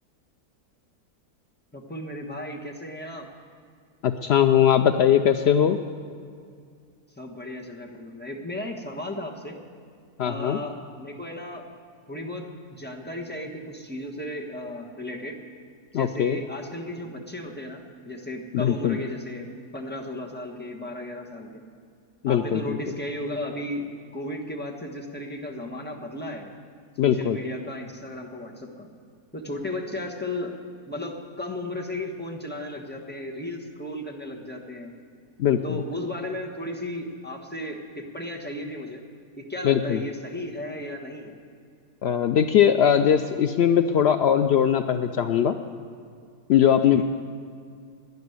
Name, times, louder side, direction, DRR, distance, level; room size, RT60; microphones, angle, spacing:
voice 1, 1.7-3.3 7.2-9.6 10.2-11.6 12.1-12.4 12.7-15.4 15.9-21.6 22.3-23.8 24.1-26.5 27.0-28.9 29.3-30.6 30.9-34.9 35.6-39.0 39.4-41.3 46.8-47.0, left 1 dB, 5° left, 0 dB, 1.2 m, -35 dB
voice 2, 4.0-5.8 10.2-10.6 15.9-16.4 18.5-19.0 22.2-22.8 27.0-27.4 35.4-35.8 39.6-40.0 42.0-45.6 46.5-47.0, left 9 dB, 80° left, 8 dB, 0.5 m, -20 dB
12.5 x 10.5 x 9.5 m, 2.3 s
omnidirectional pair, 1.7 m